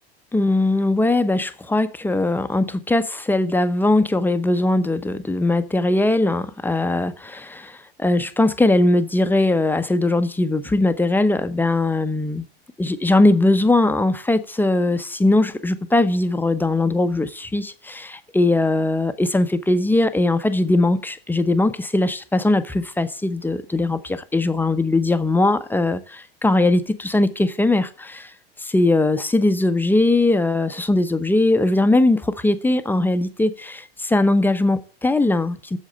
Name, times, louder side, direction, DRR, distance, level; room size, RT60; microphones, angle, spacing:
voice 1, 0.3-12.4 12.8-28.3 28.6-35.8, left 2 dB, 5° left, 0.8 m, -20 dB
8.3 x 7.3 x 7.6 m
hypercardioid pair, 85°, 29 cm